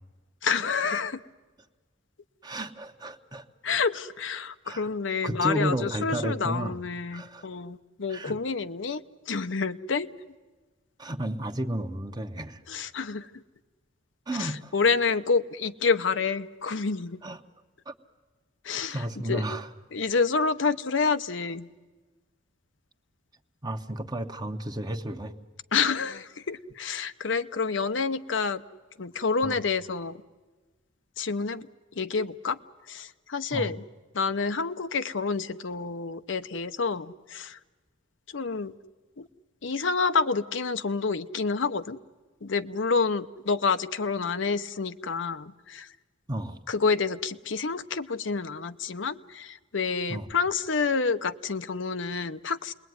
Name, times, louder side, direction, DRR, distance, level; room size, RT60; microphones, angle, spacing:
voice 1, 0.4-1.2 3.6-9.0 9.3-10.1 12.7-13.3 14.4-17.2 18.6-19.0 19.3-19.4 19.9-21.7 25.7-28.6 29.0-30.2 31.2-31.7 31.9-32.6 32.9-33.8 34.1-37.6 38.3-38.7 39.2-39.3 39.6-42.0 42.4-45.9 46.7-52.7, left 4 dB, 70° left, 10 dB, 0.8 m, -28 dB
voice 2, 2.4-3.5 4.6-4.9 5.2-6.8 7.1-7.5 8.1-8.4 11.0-12.6 14.3-14.7 17.2-17.4 17.9-18.0 18.9-19.7 23.6-25.3 29.4-29.6 33.5-33.7 46.3-46.6 50.1-50.3, right 1 dB, 20° right, 7 dB, 1.2 m, -32 dB
29.0 x 21.0 x 9.5 m, 1.3 s
head